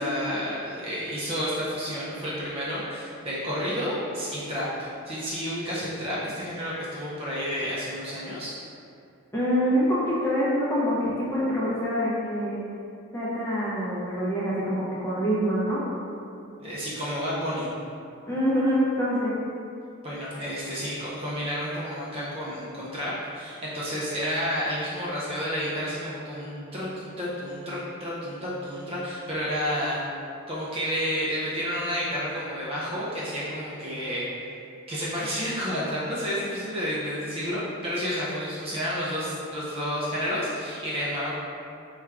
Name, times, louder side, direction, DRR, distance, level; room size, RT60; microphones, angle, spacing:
voice 1, 0.0-8.5 16.6-17.7 20.0-30.0 30.5-34.4 34.9-41.4, equal, 25° right, -8 dB, 0.5 m, -30 dB
voice 2, 9.3-12.6 13.1-15.8 18.3-19.3, equal, 10° left, -9 dB, 0.7 m, -25 dB
4.3 x 2.4 x 3.3 m, 2.6 s
head